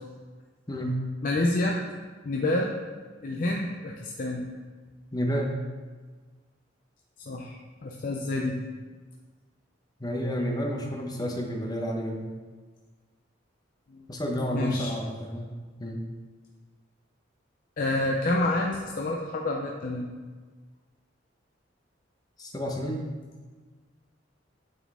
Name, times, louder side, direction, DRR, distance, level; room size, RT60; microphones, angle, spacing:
voice 1, 1.2-1.8 2.2-2.7 3.2-4.4 7.3-8.6 13.9-14.0 14.5-14.9 17.8-20.1, left 2 dB, 45° left, 0 dB, 0.5 m, -28 dB
voice 2, 5.1-5.5 10.0-12.3 14.1-15.5 15.8-16.0 22.4-23.0, equal, 20° left, 1 dB, 0.8 m, -30 dB
9.0 x 4.3 x 3.6 m, 1.4 s
head